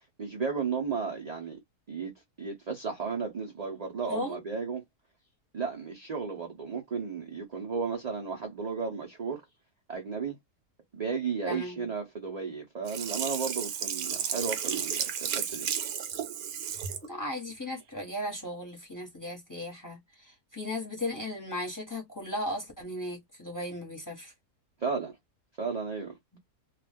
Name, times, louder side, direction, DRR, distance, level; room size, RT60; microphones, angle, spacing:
voice 1, 0.2-1.6 1.9-2.1 2.4-4.8 5.5-9.4 9.9-10.4 10.9-15.7 24.8-25.2 25.6-26.2, right 5 dB, 55° right, 0.4 m, -34 dB
voice 2, 4.1-4.4 11.5-11.9 17.0-24.3 26.3-26.4, left 1 dB, 15° left, 0.9 m, -36 dB
Sink (filling or washing), 12.9-17.1 17.5-17.6, right 8 dB, 70° right, 1.0 m, -33 dB
2.4 x 2.3 x 3.4 m
omnidirectional pair, 1.7 m